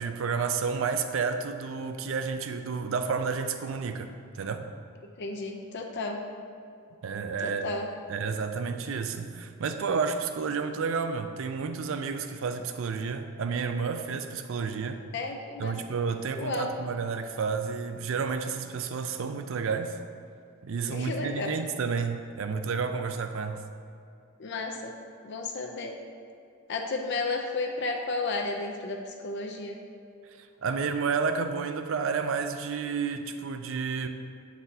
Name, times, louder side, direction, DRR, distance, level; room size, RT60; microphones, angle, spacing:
voice 1, 0.0-4.7 7.0-7.6 8.1-15.0 15.6-20.0 20.6-23.6 30.4-34.1, right 5 dB, 60° right, 7 dB, 0.4 m, -31 dB
voice 2, 5.0-6.2 7.4-7.9 15.1-15.8 16.4-16.7 20.9-21.5 24.4-24.9 25.2-26.0 26.7-29.8, left 3 dB, 50° left, 2 dB, 0.5 m, -33 dB
8.7 x 4.1 x 2.7 m, 2.5 s
head